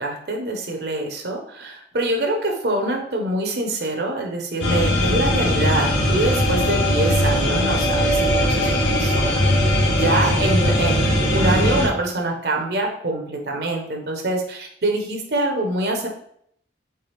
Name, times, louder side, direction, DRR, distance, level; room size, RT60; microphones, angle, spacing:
voice 1, 0.0-9.4 10.0-16.1, right 2 dB, 60° right, 2 dB, 0.8 m, -25 dB
sound 1, 4.6-11.9, left 1 dB, 90° left, 1.1 m, -19 dB
4.6 x 3.4 x 3.3 m, 0.67 s
head